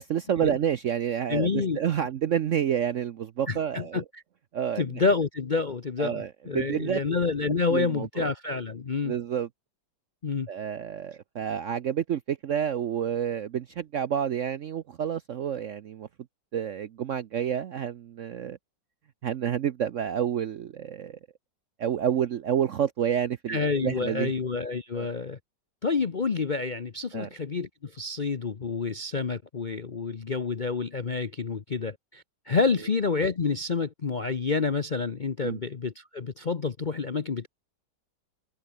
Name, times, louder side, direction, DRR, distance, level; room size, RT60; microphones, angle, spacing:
voice 1, 0.0-4.0 4.5-4.8 6.0-7.0 7.7-8.3 9.0-9.5 10.5-16.1 16.5-18.6 19.2-21.2 21.8-24.3 24.9-25.1 27.1-27.3 35.4-35.6, right 9 dB, 60° right, 0.8 m, -29 dB
voice 2, 1.3-1.8 3.5-4.2 4.7-9.1 10.2-10.5 23.5-25.4 25.8-37.5, left 4 dB, 45° left, 0.6 m, -28 dB
omnidirectional pair, 2.0 m